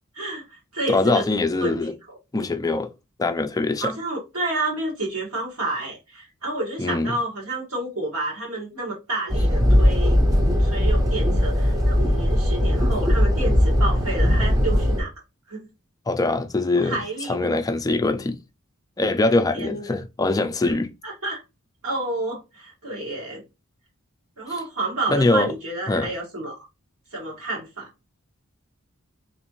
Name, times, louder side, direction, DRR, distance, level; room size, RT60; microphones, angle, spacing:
voice 1, 0.1-1.2 1.6-1.8 2.1-2.2 3.8-15.1 15.5-15.6 16.7-17.6 19.5-19.9 20.7-20.8 21.0-21.4 21.8-23.4 24.4-26.6 27.1-27.9, right 2 dB, 75° right, 1.5 m, -30 dB
voice 2, 0.9-1.9 2.3-2.9 3.2-3.9 6.8-7.2 16.1-17.0 17.3-18.4 19.0-20.9 24.5-24.6 25.1-25.5 25.9-26.1, left 2 dB, 15° left, 0.4 m, -22 dB
sound 1, 9.3-15.0, equal, 15° right, 0.7 m, -19 dB
3.6 x 3.1 x 3.0 m
head